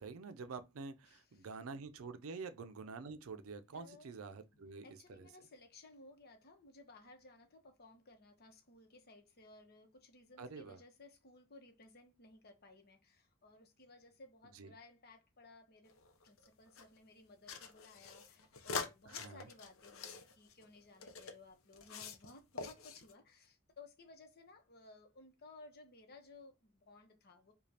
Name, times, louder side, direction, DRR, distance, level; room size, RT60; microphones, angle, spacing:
voice 1, 0.0-5.3 10.4-10.8 14.5-14.7 19.1-19.5, right 4 dB, 80° right, 0.5 m, -48 dB
voice 2, 1.1-1.5 2.3-2.4 3.7-4.1 4.5-15.9 16.2-27.5, left 3 dB, 50° left, 0.9 m, -59 dB
sound 1, 15.9-16.8 17.5-21.3 21.7-22.3 22.6-23.1, left 5 dB, 75° left, 0.7 m, -45 dB
5.0 x 2.3 x 2.8 m
head